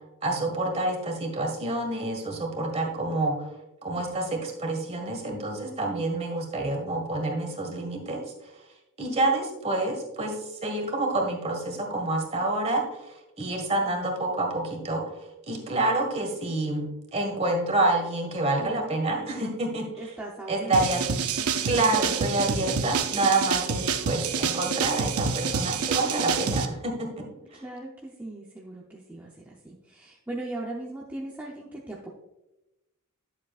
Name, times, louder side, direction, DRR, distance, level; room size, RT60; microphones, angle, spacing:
voice 1, 0.2-3.5 3.8-8.2 9.0-15.0 15.5-20.0 20.5-21.0 21.6-27.3, right 2 dB, 30° right, 1 dB, 1.8 m, -28 dB
voice 2, 18.6-22.2 27.5-32.1, right 2 dB, 10° right, -3 dB, 0.7 m, -40 dB
sound 1, 20.7-26.6, right 6 dB, 80° right, 0.7 m, -28 dB
11.0 x 7.3 x 2.5 m, 0.96 s
head